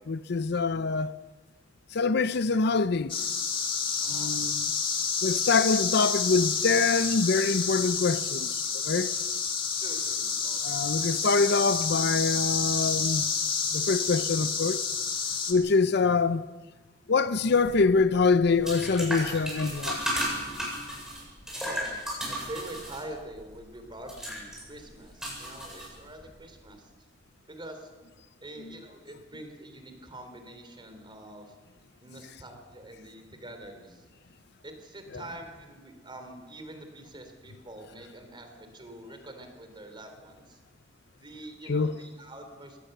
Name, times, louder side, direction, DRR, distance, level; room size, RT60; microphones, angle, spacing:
voice 1, 0.1-1.1 1.9-3.3 4.1-4.7 5.2-9.1 10.6-13.2 13.7-14.8 15.5-16.4 17.1-20.1 41.7-41.9, left 4 dB, 65° left, 0.6 m, -25 dB
sound 1, 3.1-15.5, left 6 dB, 30° left, 2.2 m, -29 dB
voice 2, 4.0-4.3 9.7-10.8 21.5-26.8 27.5-27.9 28.4-31.5 32.0-34.0 34.6-40.6 41.1-42.8, right 1 dB, 25° right, 3.4 m, -45 dB
sound 2, 17.5-26.4, equal, 5° right, 7.6 m, -35 dB
22.0 x 18.0 x 6.8 m
head